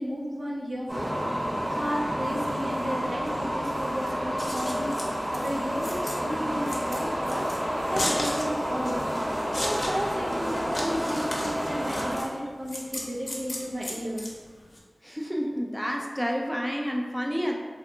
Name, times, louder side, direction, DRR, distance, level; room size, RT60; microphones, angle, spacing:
voice 1, 0.0-14.3, equal, 75° right, -3 dB, 0.5 m, -34 dB
sound 1, 0.9-12.2, equal, 40° right, 1.1 m, -30 dB
Scissors, 4.2-14.8, left 1 dB, 65° left, 0.6 m, -35 dB
voice 2, 15.0-17.6, equal, ahead, 0 dB, 0.4 m, -29 dB
3.5 x 2.5 x 2.7 m, 1.5 s
wide cardioid pair, 45°, 0 cm